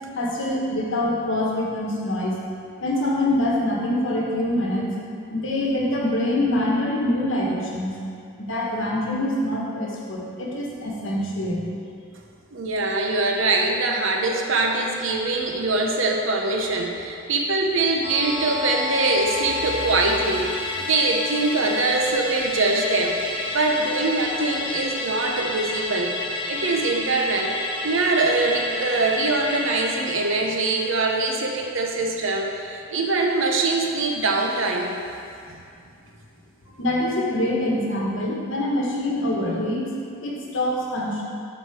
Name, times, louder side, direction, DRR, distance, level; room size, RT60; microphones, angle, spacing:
voice 1, 0.1-2.4 2.8-4.9 5.3-7.9 8.4-11.6 36.7-39.8 40.2-41.2, left 1 dB, 60° left, -3 dB, 1.4 m, -25 dB
voice 2, 12.5-23.2 23.5-26.1 26.5-27.5 27.8-35.0, right 3 dB, 65° right, 1 dB, 0.8 m, -23 dB
Musical instrument, 18.0-32.7 33.0-33.1, left 2 dB, 25° left, 0.8 m, -30 dB
7.2 x 4.4 x 6.0 m, 2.5 s
head